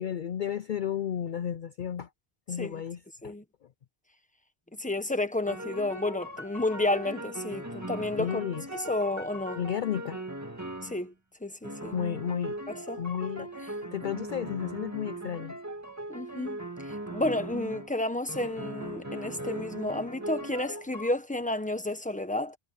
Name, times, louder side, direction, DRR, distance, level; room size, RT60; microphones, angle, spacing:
voice 1, 0.0-2.1 2.5-3.3 8.2-8.7 9.6-10.2 11.9-12.6 13.0-13.5 13.9-15.6, left 9 dB, 55° left, 0.6 m, -32 dB
voice 2, 4.8-8.4 8.7-9.6 10.8-11.1 11.4-11.9 12.7-13.0 16.1-16.6 16.9-22.6, left 2 dB, 5° left, 1.3 m, -31 dB
sound 1, 5.5-11.1 11.6-17.9 18.3-21.1, right 1 dB, 15° right, 2.0 m, -39 dB
omnidirectional pair, 1.1 m